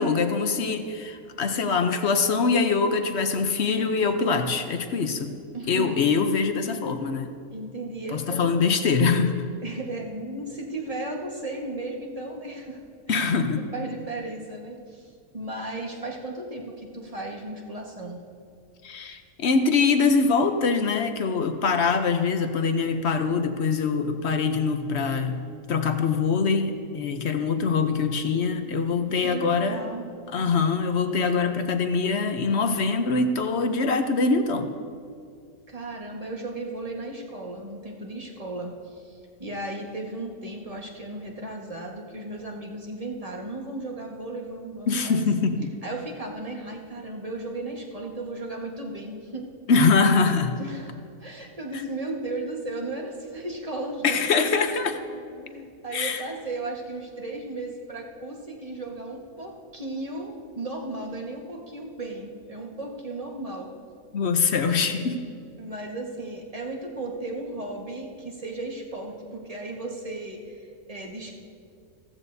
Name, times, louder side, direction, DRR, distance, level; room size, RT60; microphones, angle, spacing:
voice 1, 0.0-5.3 5.7-7.3 8.1-9.4 13.1-13.7 18.8-25.4 25.7-29.8 30.3-34.7 44.9-45.7 49.7-50.5 54.0-54.9 55.9-56.2 64.1-65.2, left 4 dB, 55° left, 7 dB, 0.9 m, -23 dB
voice 2, 5.5-6.0 7.5-8.7 9.6-12.8 13.1-15.1 15.3-18.2 29.2-30.1 35.7-45.2 45.8-49.5 50.5-54.2 54.7-54.9 55.3-63.7 64.6-64.8 65.6-71.3, right 2 dB, 25° right, 0 dB, 1.5 m, -35 dB
15.5 x 14.5 x 2.7 m, 2.4 s
omnidirectional pair, 1.6 m